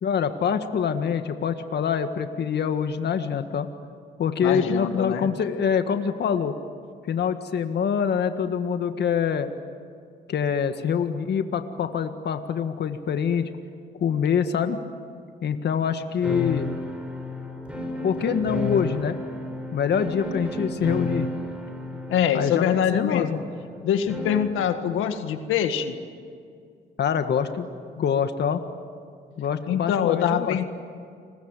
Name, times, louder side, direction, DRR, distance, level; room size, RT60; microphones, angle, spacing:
voice 1, 0.0-3.7 4.2-6.5 7.1-9.5 10.3-13.5 14.0-14.8 15.4-16.7 18.0-19.2 19.7-21.3 22.3-23.3 27.0-27.7 27.9-28.6 29.4-30.6, left 7 dB, 60° left, 8 dB, 1.7 m, -25 dB
voice 2, 4.4-5.3 22.1-23.4 23.8-25.9 29.7-30.6, left 9 dB, 90° left, 8 dB, 1.8 m, -24 dB
sound 1, 16.2-24.6, left 2 dB, 5° right, 6.7 m, -33 dB
29.5 x 21.5 x 9.1 m, 2.3 s
cardioid pair, 90°, 20 cm